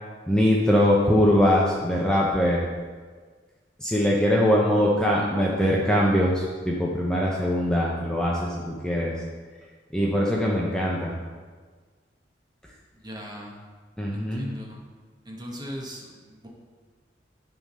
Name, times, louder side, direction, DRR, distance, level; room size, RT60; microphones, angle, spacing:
voice 1, 0.3-2.6 3.8-9.1 9.9-11.2 14.0-14.5, equal, 5° left, -4 dB, 0.7 m, -22 dB
voice 2, 12.9-13.6 14.1-14.8 15.2-16.5, equal, 25° right, -2 dB, 1.4 m, -39 dB
10.0 x 3.8 x 5.4 m, 1.5 s
head